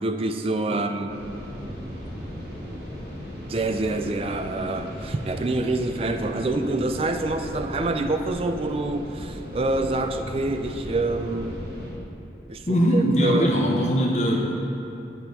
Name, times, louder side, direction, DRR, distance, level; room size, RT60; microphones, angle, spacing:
voice 1, 0.0-1.1 3.5-11.6 12.5-13.5, right 2 dB, 35° right, 6 dB, 0.3 m, -26 dB
sound 1, 1.1-11.9, equal, 60° right, 1.6 m, -37 dB
voice 2, 12.7-14.6, equal, 40° left, -2 dB, 0.7 m, -21 dB
8.1 x 4.4 x 5.3 m, 2.8 s
head